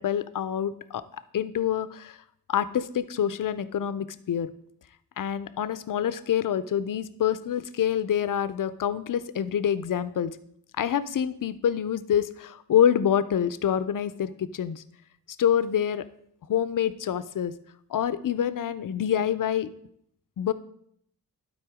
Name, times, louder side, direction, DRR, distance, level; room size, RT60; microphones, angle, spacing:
voice 1, 0.0-2.2 2.5-4.5 5.2-10.3 10.8-14.8 15.4-16.1 16.5-17.5 17.9-19.7 20.4-20.5, left 9 dB, 55° left, 15 dB, 0.5 m, -26 dB
11.5 x 4.3 x 4.8 m, 0.68 s
wide cardioid pair, 145°, 40 cm